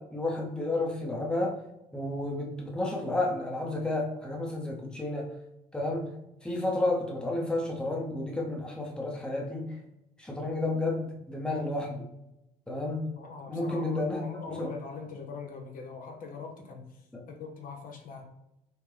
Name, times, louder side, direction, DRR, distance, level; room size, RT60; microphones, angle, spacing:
voice 1, 0.0-1.6 1.9-5.4 5.7-6.1 6.4-9.8 10.2-12.1 12.7-13.1 13.5-14.7 17.1-17.3, left 2 dB, 5° left, -1 dB, 0.7 m, -31 dB
voice 2, 13.1-16.8 17.3-18.3, left 4 dB, 55° left, 3 dB, 0.7 m, -42 dB
5.6 x 2.1 x 3.3 m, 0.87 s
cardioid pair, 110°, 17 cm